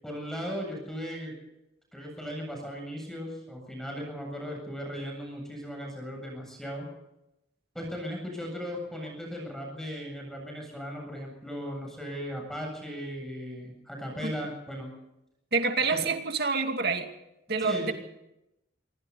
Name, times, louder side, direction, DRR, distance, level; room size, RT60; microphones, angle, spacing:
voice 1, 0.0-1.3 1.9-6.9 7.7-14.9 15.9-16.0 17.6-17.9, equal, 5° left, 1 dB, 7.8 m, -37 dB
voice 2, 15.5-17.1 17.5-17.9, right 4 dB, 60° right, 5 dB, 2.7 m, -27 dB
27.0 x 23.5 x 4.2 m, 0.87 s
head